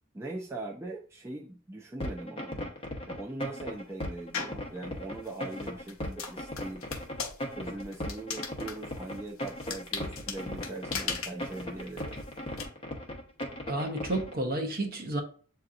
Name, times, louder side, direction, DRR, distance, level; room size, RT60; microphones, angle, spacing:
voice 1, 0.1-2.7 3.1-6.8 7.5-12.2, right 2 dB, 15° right, -3 dB, 0.5 m, -41 dB
sound 1, 2.0-14.3, left 1 dB, 25° left, 0.9 m, -37 dB
sound 2, 4.3-4.7 5.2-12.6, left 6 dB, 70° left, 0.8 m, -39 dB
voice 2, 13.7-15.2, right 1 dB, 45° right, 3 dB, 0.9 m, -31 dB
7.6 x 2.8 x 2.5 m, 0.42 s
head